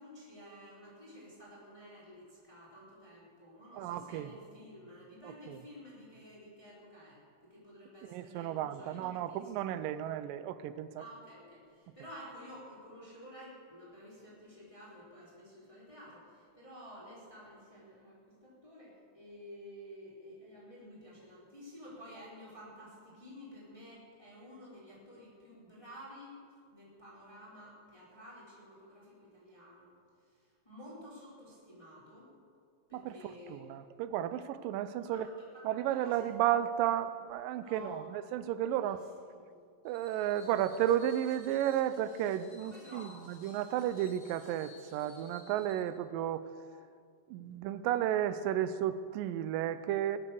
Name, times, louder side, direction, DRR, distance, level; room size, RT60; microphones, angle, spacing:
voice 1, 0.0-9.4 11.0-26.4 26.7-29.9 30.2-32.3 32.9-33.6 35.0-35.2 35.5-35.6 36.0-36.3 37.6-38.0 38.7-39.0 39.2-39.5 40.1-40.4 42.6-43.2, equal, 10° left, -7 dB, 4.0 m, -52 dB
voice 2, 3.7-4.3 5.2-5.6 8.0-11.0 32.9-35.3 35.6-39.0 39.8-46.5 47.3-50.2, right 11 dB, 80° right, 13 dB, 2.3 m, -33 dB
Screech, 39.9-45.9, left 4 dB, 65° left, 0.8 m, -58 dB
20.0 x 8.3 x 7.0 m, 2.1 s
omnidirectional pair, 4.0 m